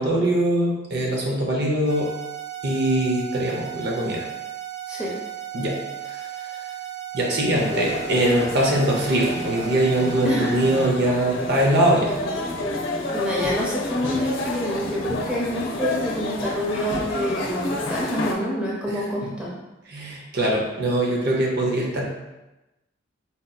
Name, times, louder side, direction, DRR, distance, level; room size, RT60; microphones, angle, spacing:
voice 1, 0.0-2.1 2.6-4.3 5.5-5.8 6.0-6.6 7.1-12.1 18.9-19.3 19.9-22.0, right 1 dB, 55° right, -1 dB, 0.6 m, -22 dB
sound 1, 1.9-10.9, right 11 dB, 70° right, 1.2 m, -35 dB
sound 2, 7.6-18.3, left 2 dB, 70° left, 0.6 m, -29 dB
voice 2, 10.2-10.6 13.1-19.5, equal, 5° right, -5 dB, 0.6 m, -27 dB
4.2 x 2.6 x 2.2 m, 1.0 s
head